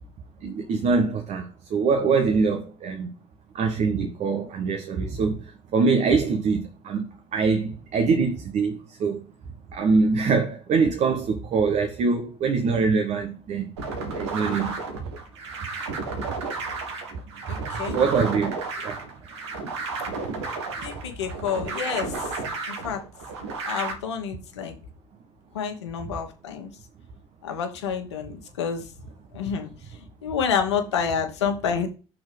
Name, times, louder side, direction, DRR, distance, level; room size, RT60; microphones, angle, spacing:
voice 1, 0.4-3.1 3.5-9.2 9.7-13.7 14.1-14.8 17.5-18.6 18.8-19.0, right 4 dB, 55° right, 1.4 m, -24 dB
sound 1, 13.8-23.9, right 3 dB, 85° right, 1.6 m, -32 dB
voice 2, 17.5-18.0 20.8-22.3 22.7-23.0 23.6-24.8 25.5-26.7 27.4-28.9 29.3-29.7 30.2-31.9, left 7 dB, 90° left, 1.2 m, -28 dB
6.3 x 4.3 x 4.9 m
hypercardioid pair, 65°, 14 cm